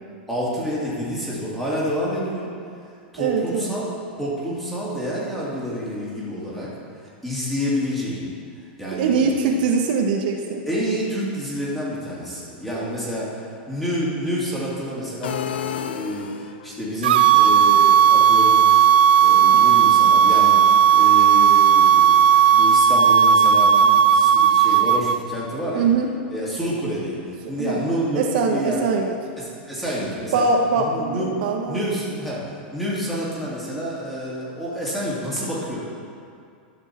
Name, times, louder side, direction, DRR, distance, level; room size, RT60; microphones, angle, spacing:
voice 1, 0.3-2.5 3.1-6.7 7.0-8.3 8.8-9.6 10.7-18.6 19.2-20.6 20.9-25.9 26.3-28.9 29.4-30.5 30.7-35.8, equal, 5° left, -8 dB, 2.4 m, -28 dB
voice 2, 3.2-3.8 8.9-10.6 19.5-19.6 25.7-26.1 27.4-27.9 28.2-29.1 30.3-31.8, right 4 dB, 60° right, 2 dB, 0.8 m, -22 dB
sound 1, 15.2-16.8, left 9 dB, 90° left, 0.5 m, -30 dB
sound 2, 17.0-25.2, right 8 dB, 80° right, 0.4 m, -14 dB
12.0 x 6.2 x 4.3 m, 2.3 s
supercardioid pair, 140°, 5 cm